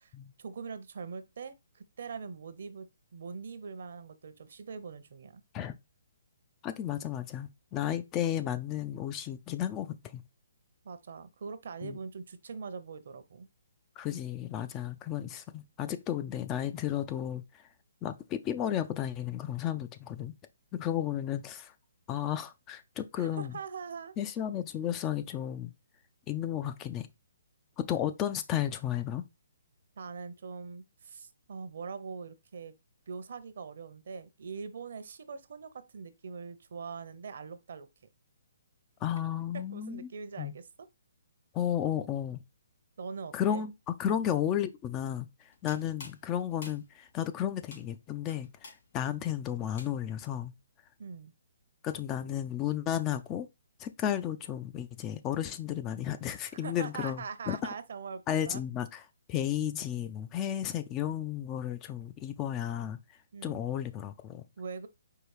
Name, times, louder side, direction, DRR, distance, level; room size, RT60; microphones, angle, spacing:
voice 1, 0.0-2.9 3.1-5.4 10.8-13.5 23.2-24.1 30.0-32.7 33.1-37.9 39.5-40.7 43.0-43.7 44.1-44.2 51.0-51.3 56.5-58.6 63.3-63.7 64.6-64.9, right 5 dB, 65° right, 0.7 m, -42 dB
voice 2, 6.6-10.2 11.8-12.0 14.0-17.4 18.0-20.3 20.7-21.7 22.1-23.5 24.2-25.7 26.3-27.1 27.8-29.2 39.0-40.1 40.4-40.5 41.5-42.4 43.3-50.5 51.8-53.5 53.8-57.7 58.3-59.0 59.3-63.0 63.4-64.4, left 10 dB, 20° left, 0.3 m, -33 dB
sound 1, 45.4-50.3, left 3 dB, 60° left, 2.5 m, -52 dB
4.7 x 2.4 x 4.8 m
hypercardioid pair, 155°, 0 cm